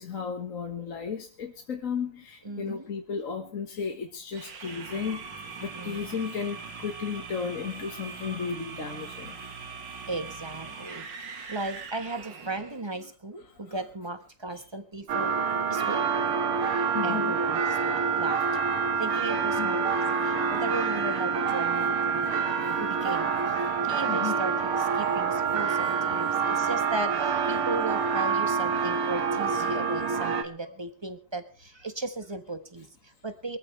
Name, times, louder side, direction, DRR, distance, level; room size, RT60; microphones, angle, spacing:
voice 1, 0.0-5.2 5.6-9.4 9.9-10.0 13.5-13.6 16.9-17.3 19.6-19.8 22.2-22.8 24.1-24.4 25.8-25.9, left 6 dB, 40° left, 3 dB, 1.7 m, -34 dB
voice 2, 2.4-2.9 3.4-3.5 5.7-6.1 10.1-15.4 15.7-16.2 17.0-22.3 22.7-33.6, right 2 dB, 15° right, 9 dB, 1.0 m, -37 dB
sound 1, 4.3-12.8, right 5 dB, 55° right, 2.4 m, -41 dB
sound 2, 15.1-30.4, right 6 dB, 80° right, 2.4 m, -27 dB
23.5 x 14.5 x 3.3 m, 0.33 s
omnidirectional pair, 2.4 m